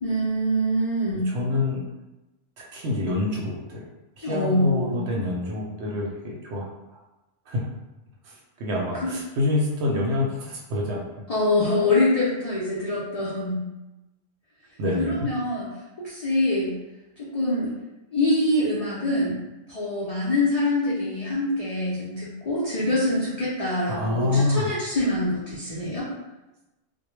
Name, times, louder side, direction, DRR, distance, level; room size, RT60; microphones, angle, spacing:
voice 1, 0.0-1.3 4.2-5.0 8.9-9.1 11.3-13.6 14.9-15.7 16.0-16.8 17.2-17.7 18.1-19.4 19.7-26.1, left 1 dB, 60° left, -8 dB, 0.4 m, -24 dB
voice 2, 1.3-1.8 2.7-3.9 4.2-6.7 7.5-7.7 8.2-11.0 14.8-15.3 23.9-24.7, left 2 dB, 65° right, -2 dB, 0.8 m, -26 dB
2.2 x 2.1 x 3.0 m, 1.0 s
omnidirectional pair, 1.4 m